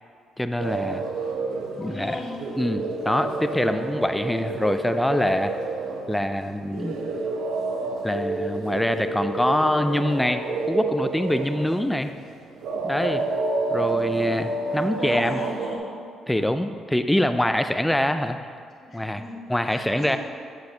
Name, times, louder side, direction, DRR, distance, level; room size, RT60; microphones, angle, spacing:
voice 1, 0.4-1.0 1.8-2.2 2.6-5.6 6.1-7.0 8.0-10.4 10.7-12.1 12.8-13.2 13.7-15.4 16.3-18.4 18.9-19.2 19.5-20.2, left 1 dB, 5° left, 8 dB, 0.4 m, -24 dB
sound 1, 0.6-15.8, right 3 dB, 85° right, 0.8 m, -29 dB
voice 2, 1.7-2.4 14.7-16.1 18.8-19.4 19.7-20.2, left 2 dB, 40° left, -4 dB, 2.0 m, -36 dB
8.9 x 7.9 x 2.8 m, 2.2 s
cardioid pair, 90°, 0 cm